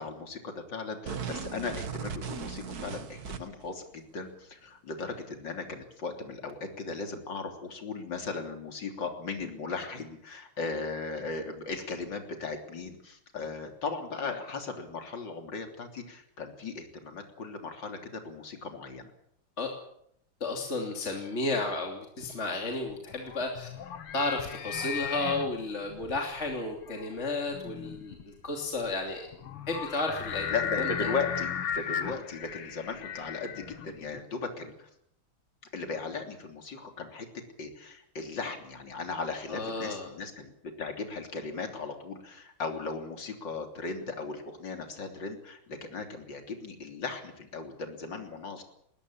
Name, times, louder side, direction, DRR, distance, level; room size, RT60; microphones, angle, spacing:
voice 1, 0.0-19.1 30.5-34.9 35.7-37.3 37.6-48.6, left 4 dB, 55° left, 5 dB, 3.9 m, -37 dB
sound 1, 1.1-3.7, right 6 dB, 50° right, 1.8 m, -37 dB
voice 2, 20.4-23.7 24.1-29.3 29.7-30.9 39.5-40.1, left 2 dB, 30° left, 2 dB, 3.2 m, -33 dB
sound 2, 22.8-34.2, left 8 dB, 90° left, 2.3 m, -36 dB
20.5 x 20.0 x 8.6 m, 0.73 s
omnidirectional pair, 2.4 m